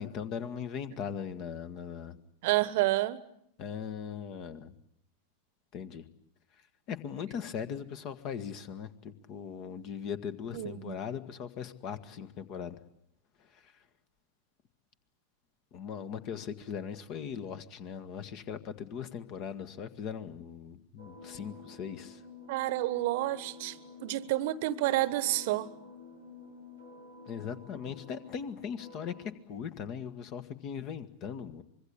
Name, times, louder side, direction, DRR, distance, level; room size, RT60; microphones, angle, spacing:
voice 1, 0.0-2.2 3.6-4.7 5.7-6.0 6.9-12.8 13.5-13.7 15.7-22.2 27.3-31.6, left 7 dB, 40° left, 1.7 m, -39 dB
voice 2, 2.4-3.2 10.5-11.0 22.5-23.8 24.0-25.7, right 17 dB, 50° right, 1.1 m, -29 dB
sound 1, 21.0-29.3, left 4 dB, 80° left, 5.7 m, -50 dB
25.0 x 22.5 x 8.6 m
figure-of-eight pair, 90°, 0 cm